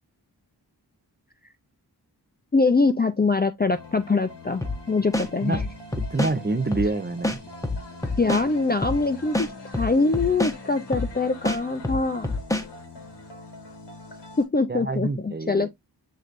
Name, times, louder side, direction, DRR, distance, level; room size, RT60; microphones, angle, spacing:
voice 1, 2.5-5.6 8.2-12.3 14.4-15.7, left 3 dB, 25° left, 0.4 m, -23 dB
sound 1, 3.7-14.4, left 2 dB, 85° left, 1.3 m, -43 dB
sound 2, 4.6-4.8 5.1-6.3 6.7-6.9 7.2-8.4 8.8-9.0 9.3-10.6 10.9-11.1 11.4-12.7, left 2 dB, 10° left, 0.8 m, -26 dB
voice 2, 5.4-7.4 14.7-15.7, right 3 dB, 25° right, 0.6 m, -27 dB
6.5 x 3.2 x 2.4 m
wide cardioid pair, 50°, 41 cm